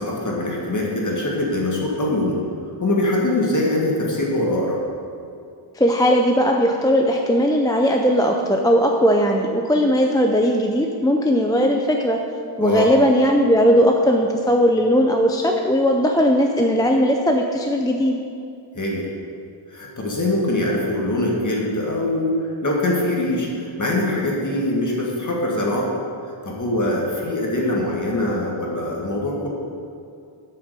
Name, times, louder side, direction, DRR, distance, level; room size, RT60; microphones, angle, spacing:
voice 1, 0.0-2.4 2.8-4.8 12.6-12.9 18.7-19.1 19.7-25.9 26.4-29.5, left 1 dB, 40° left, -2 dB, 1.8 m, -23 dB
voice 2, 5.8-12.2 12.6-18.1, equal, 10° left, 2 dB, 0.4 m, -18 dB
8.0 x 6.8 x 6.7 m, 2.5 s
wide cardioid pair, 175°, 49 cm